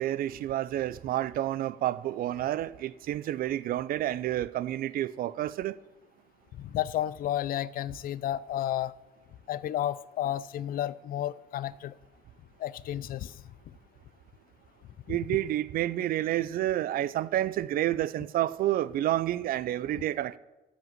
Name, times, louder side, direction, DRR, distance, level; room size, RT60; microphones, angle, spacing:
voice 1, 0.0-5.8 15.1-20.4, right 13 dB, 60° right, 0.4 m, -29 dB
voice 2, 6.6-8.9 9.5-11.9 12.6-13.4 15.1-15.2, left 12 dB, 60° left, 0.4 m, -32 dB
13.0 x 5.1 x 7.9 m
cardioid pair, 110°, 17 cm